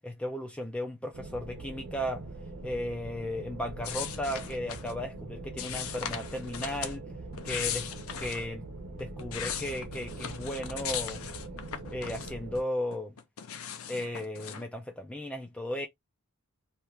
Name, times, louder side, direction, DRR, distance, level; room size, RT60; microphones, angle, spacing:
voice 1, 0.0-2.2 2.6-7.0 7.4-7.9 8.2-8.6 8.9-11.2 11.9-13.1 13.9-15.9, left 1 dB, 5° left, 0.3 m, -35 dB
sound 1, 1.1-12.6, right 2 dB, 85° right, 0.9 m, -43 dB
sound 2, 3.8-5.0 5.6-7.0 7.3-8.5 9.0-12.6 12.9-14.6, left 8 dB, 70° left, 0.5 m, -38 dB
2.9 x 2.4 x 3.3 m
head